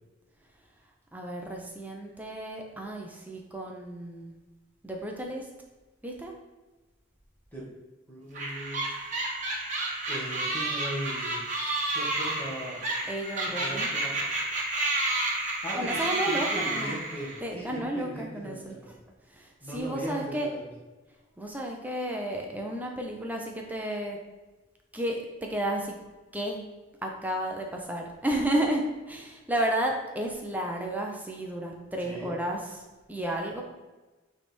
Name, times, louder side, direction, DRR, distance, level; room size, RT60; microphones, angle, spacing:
voice 1, 1.1-4.3 4.8-5.5 6.0-6.3 13.1-13.9 15.8-17.0 17.4-18.9 19.3-20.5 21.4-24.2 24.9-26.0 26.3-26.7 27.0-32.8 33.1-33.6, right 1 dB, 10° right, 0 dB, 0.7 m, -32 dB
voice 2, 8.1-8.9 10.1-11.4 11.9-12.8 13.6-14.3 15.6-15.8 16.0-18.8 19.6-20.7 32.0-32.3, equal, 10° left, -7 dB, 1.7 m, -38 dB
sound 1, 8.3-17.4, right 2 dB, 35° right, 1.2 m, -30 dB
8.9 x 3.5 x 4.5 m, 1.2 s
head